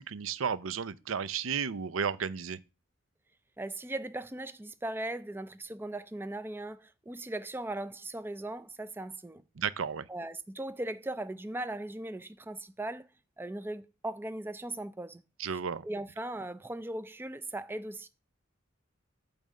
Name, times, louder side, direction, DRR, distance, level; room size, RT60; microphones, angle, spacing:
voice 1, 0.0-2.6 9.6-10.1 15.4-15.8, right 6 dB, 75° right, 0.6 m, -33 dB
voice 2, 3.6-9.4 10.1-13.1 13.4-15.2 15.8-18.1, right 1 dB, 10° right, 0.4 m, -38 dB
8.8 x 3.5 x 6.5 m
head